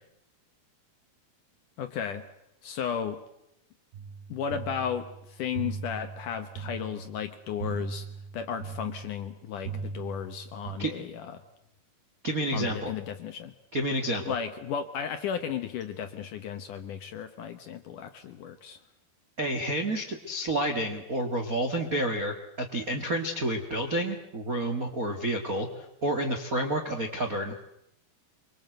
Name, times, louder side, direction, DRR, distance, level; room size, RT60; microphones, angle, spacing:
voice 1, 1.8-2.3 2.6-3.2 4.3-8.1 8.3-11.4 12.5-13.5 14.3-18.8, left 8 dB, 65° left, 8 dB, 2.1 m, -34 dB
sound 1, 3.9-10.8, right 5 dB, 85° right, 4.9 m, -40 dB
voice 2, 12.2-12.9 13.7-14.3 19.4-27.6, right 1 dB, 50° right, 3 dB, 1.0 m, -29 dB
25.0 x 23.5 x 7.9 m, 0.81 s
omnidirectional pair, 4.8 m